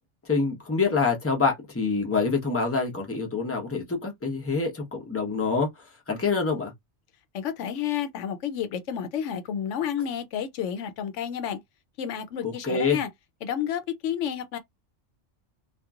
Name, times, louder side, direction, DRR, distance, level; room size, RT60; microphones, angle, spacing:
voice 1, 0.3-5.7 6.1-6.7 12.4-13.0, left 4 dB, 15° left, 0.8 m, -26 dB
voice 2, 7.3-11.6 12.0-13.1 13.4-14.6, left 9 dB, 85° left, 0.9 m, -30 dB
2.9 x 2.5 x 2.4 m
omnidirectional pair, 1.2 m